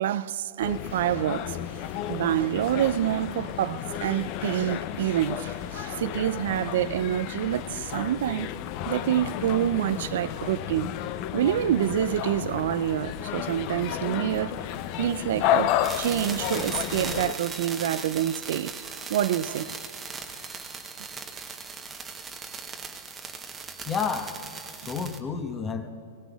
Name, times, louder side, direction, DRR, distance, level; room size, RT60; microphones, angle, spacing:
voice 1, 0.0-8.5 8.9-11.0 11.3-14.5 15.0-19.8, right 11 dB, 65° right, 0.4 m, -27 dB
sound 1, 0.6-17.3, left 11 dB, 40° left, 0.5 m, -32 dB
sound 2, 15.8-25.2, right 5 dB, 15° right, 0.9 m, -38 dB
voice 2, 23.8-24.4 24.7-25.9, left 5 dB, 20° left, 1.0 m, -30 dB
20.0 x 17.0 x 2.4 m
hypercardioid pair, 135°, 0 cm